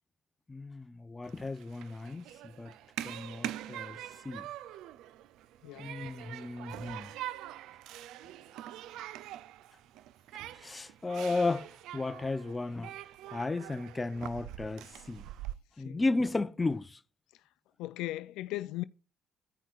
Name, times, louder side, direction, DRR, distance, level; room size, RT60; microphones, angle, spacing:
voice 1, 0.5-2.7 3.0-4.0 4.2-4.5 5.8-7.1 10.6-12.9 13.3-15.3 15.8-17.0, left 3 dB, 20° left, 0.6 m, -34 dB
Human group actions, 1.2-15.5, right 13 dB, 80° right, 0.4 m, -44 dB
voice 2, 17.8-18.8, left 17 dB, 80° left, 0.3 m, -37 dB
15.0 x 5.6 x 2.4 m
supercardioid pair, 75°, 0 cm